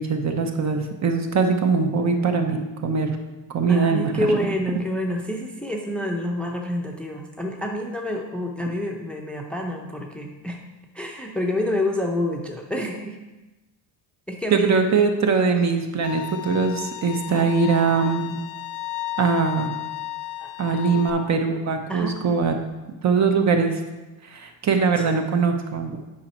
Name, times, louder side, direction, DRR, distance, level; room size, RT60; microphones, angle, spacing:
voice 1, 0.0-3.2 3.5-4.4 14.5-18.4 19.2-19.7 20.6-22.5 23.0-23.8 24.2-26.0, right 5 dB, 40° right, 5 dB, 0.9 m, -22 dB
voice 2, 3.7-10.6 10.9-13.2 14.3-14.7 17.3-17.5 20.4-21.1 21.9-22.2 25.0-25.1, left 1 dB, 5° left, 1 dB, 0.6 m, -28 dB
Bowed string instrument, 16.0-21.1, left 15 dB, 85° left, 0.9 m, -34 dB
8.5 x 5.4 x 4.3 m, 1.1 s
cardioid pair, 145°, 42 cm